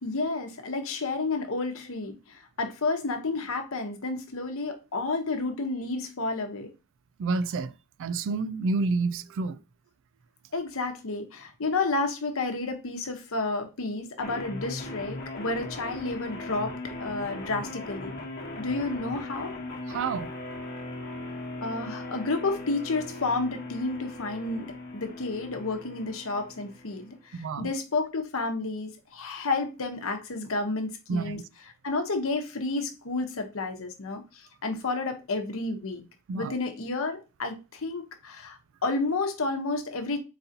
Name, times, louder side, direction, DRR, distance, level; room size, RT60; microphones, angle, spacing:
voice 1, 0.0-6.7 10.5-18.1 18.6-19.5 21.6-31.4 31.8-36.0 36.3-40.2, left 3 dB, 65° left, 0.9 m, -31 dB
voice 2, 7.2-7.7 8.0-9.6 19.9-20.3 27.3-27.7 31.1-31.4 36.3-36.5, right 3 dB, 60° right, 0.3 m, -29 dB
sound 1, 14.2-27.2, left 2 dB, 45° left, 1.1 m, -39 dB
4.1 x 3.8 x 2.7 m
head